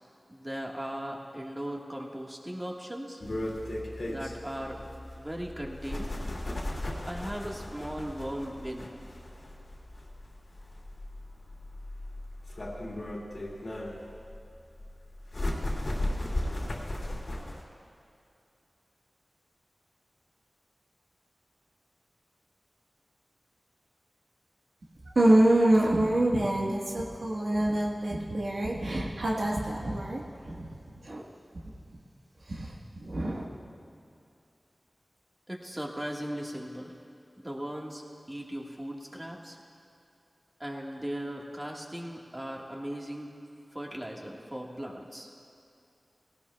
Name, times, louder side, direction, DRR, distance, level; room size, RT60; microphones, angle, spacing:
voice 1, 0.3-3.2 4.1-4.8 5.2-6.1 7.1-8.9 35.5-36.9 37.4-38.0 38.3-39.6 40.6-43.3 43.7-45.3, equal, 20° right, -1 dB, 1.6 m, -38 dB
sound 1, 3.2-17.6, left 1 dB, 65° left, 2.2 m, -36 dB
voice 2, 25.0-30.7 31.0-31.3 32.5-32.7 33.0-33.4, right 1 dB, 75° right, -4 dB, 1.4 m, -26 dB
18.0 x 17.5 x 2.3 m, 2.6 s
wide cardioid pair, 70°, 0 cm